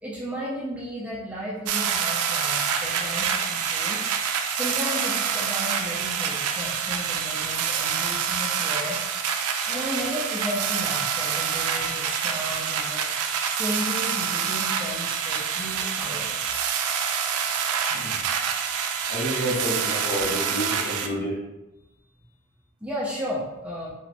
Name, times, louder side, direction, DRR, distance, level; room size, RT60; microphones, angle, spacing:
voice 1, 0.0-4.1 4.5-9.1 9.7-13.1 13.4-16.6 22.8-23.9, equal, 5° right, -6 dB, 0.4 m, -34 dB
sound 1, 1.7-21.1, right 7 dB, 80° right, 0.3 m, -27 dB
voice 2, 19.1-21.4, equal, 55° left, -8 dB, 1.5 m, -29 dB
3.0 x 2.9 x 2.5 m, 0.97 s
head